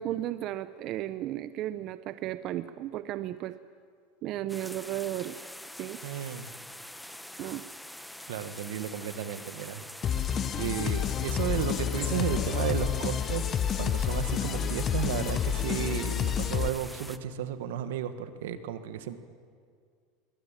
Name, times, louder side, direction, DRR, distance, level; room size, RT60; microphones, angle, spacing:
voice 1, 0.0-3.5 4.2-5.4 5.8-6.0 7.4-7.6, right 13 dB, 50° right, 13 dB, 0.6 m, -34 dB
sound 1, 4.5-17.2, left 1 dB, 5° left, 0.9 m, -45 dB
voice 2, 6.0-6.5 8.3-9.8 10.1-10.2 10.6-13.5 13.8-19.2, right 10 dB, 85° right, 10 dB, 1.5 m, -33 dB
sound 2, 10.0-16.7, left 9 dB, 35° left, 0.8 m, -29 dB
sound 3, 10.4-16.1, left 8 dB, 50° left, 2.2 m, -47 dB
23.0 x 17.5 x 9.0 m, 2.1 s
supercardioid pair, 125°, 0 cm